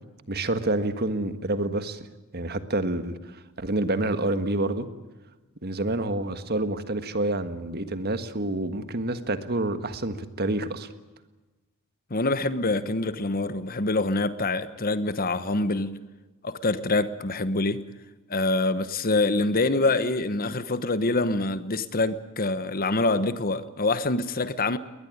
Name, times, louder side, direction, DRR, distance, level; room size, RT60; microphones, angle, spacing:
voice 1, 0.3-2.0 2.3-4.9 5.6-10.9, right 2 dB, 45° right, 1.6 m, -28 dB
voice 2, 12.1-16.0 16.4-17.8 18.3-24.8, left 2 dB, 40° left, 1.2 m, -25 dB
21.5 x 20.0 x 9.6 m
head